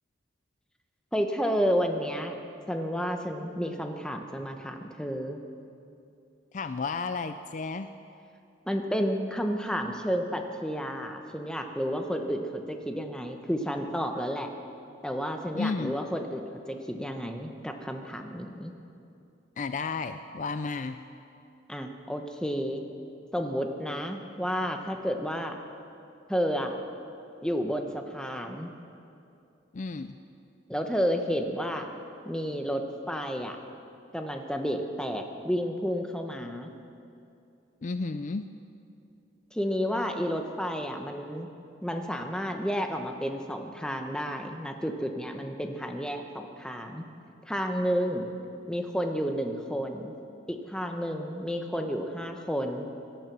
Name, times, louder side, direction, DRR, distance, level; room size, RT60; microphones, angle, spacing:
voice 1, 1.1-2.4 2.7-5.4 8.7-14.5 15.0-18.7 21.7-22.8 23.3-25.6 26.3-26.7 27.4-28.7 30.7-31.9 32.2-33.6 34.1-36.7 39.5-41.5 41.8-47.0 47.5-48.3 48.7-50.1 50.5-52.9, equal, 5° left, 4 dB, 1.0 m, -31 dB
voice 2, 6.5-7.9 15.5-16.0 19.6-21.0 29.7-30.1 37.8-38.5, left 4 dB, 40° left, 10 dB, 0.4 m, -32 dB
17.5 x 12.5 x 6.0 m, 2.6 s
head